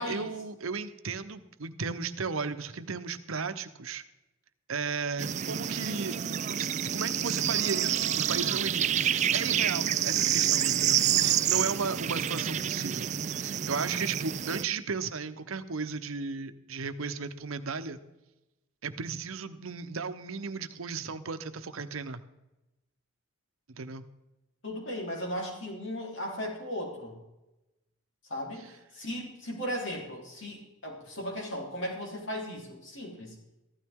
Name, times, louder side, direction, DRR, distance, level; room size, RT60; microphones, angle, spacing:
voice 1, 0.0-4.0 4.7-6.2 6.5-18.0 18.8-22.2 23.8-24.0, right 5 dB, 90° right, 10 dB, 0.8 m, -35 dB
sound 1, 5.2-14.6, right 10 dB, 35° right, 0.3 m, -28 dB
voice 2, 24.6-27.2 28.3-33.4, equal, 65° left, -1 dB, 3.6 m, -36 dB
15.0 x 12.5 x 3.6 m, 0.99 s
head